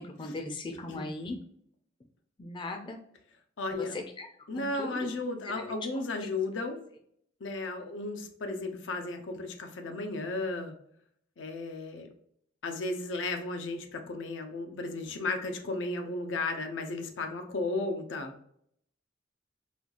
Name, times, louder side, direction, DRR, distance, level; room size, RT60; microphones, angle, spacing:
voice 1, 0.0-1.4 2.4-3.0 3.8-4.3 4.5-5.1 5.4-5.8, left 2 dB, 25° left, 4 dB, 0.4 m, -38 dB
voice 2, 3.6-3.9 4.5-6.8 7.4-10.7 11.4-12.1 12.6-18.3, left 2 dB, 85° left, 5 dB, 0.6 m, -34 dB
4.3 x 2.3 x 2.4 m, 0.67 s
head